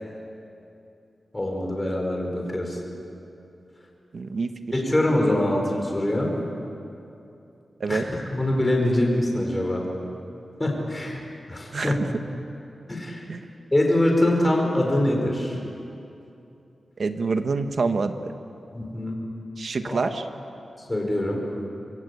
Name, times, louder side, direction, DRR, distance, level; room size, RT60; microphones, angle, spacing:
voice 1, 1.3-2.8 4.7-6.3 7.9-9.8 10.6-11.2 11.5-12.0 12.9-13.2 13.7-15.6 18.7-19.2 19.8-20.1 20.9-21.4, left 1 dB, 15° left, 0 dB, 4.8 m, -24 dB
voice 2, 4.1-4.5 7.8-8.1 11.7-12.0 13.3-13.4 17.0-18.3 19.6-20.3, right 4 dB, 60° right, 8 dB, 1.4 m, -26 dB
25.5 x 23.0 x 8.4 m, 2.8 s
wide cardioid pair, 135°, 0 cm